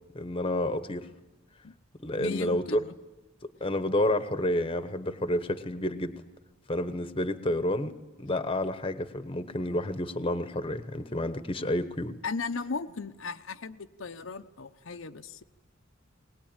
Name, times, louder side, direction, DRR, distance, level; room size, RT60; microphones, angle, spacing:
voice 1, 0.1-1.1 2.0-2.8 3.6-6.1 6.7-12.2, left 1 dB, 25° left, 11 dB, 1.0 m, -29 dB
voice 2, 2.1-2.9 12.2-15.4, left 4 dB, 80° left, 7 dB, 0.8 m, -36 dB
21.0 x 19.5 x 8.9 m, 1.0 s
head